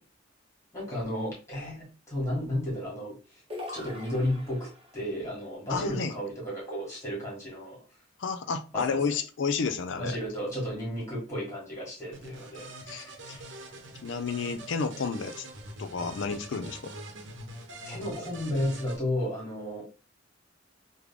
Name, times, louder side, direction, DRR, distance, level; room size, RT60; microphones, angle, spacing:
voice 1, 0.7-3.2 3.7-7.8 8.7-9.0 9.9-12.7 17.8-19.8, left 1 dB, 15° left, 1.8 m, -33 dB
sound 1, 3.5-5.0, left 2 dB, 30° right, 0.8 m, -41 dB
voice 2, 5.7-6.1 8.2-10.2 12.9-13.4 14.0-15.5 15.8-16.9, left 5 dB, 70° left, 0.4 m, -31 dB
sound 2, 12.1-19.0, right 1 dB, 65° right, 0.8 m, -44 dB
3.5 x 2.1 x 3.6 m
head